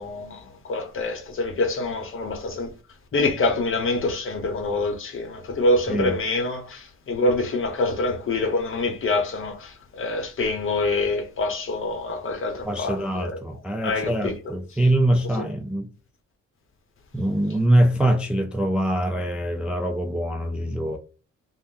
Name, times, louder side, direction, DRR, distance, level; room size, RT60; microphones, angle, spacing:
voice 1, 0.0-2.7 3.1-13.4 13.8-14.3 15.4-15.5, left 2 dB, 45° left, 0.8 m, -26 dB
voice 2, 12.6-15.9 17.1-21.0, right 1 dB, 5° right, 0.3 m, -23 dB
2.4 x 2.1 x 3.6 m
cardioid pair, 90°, 30 cm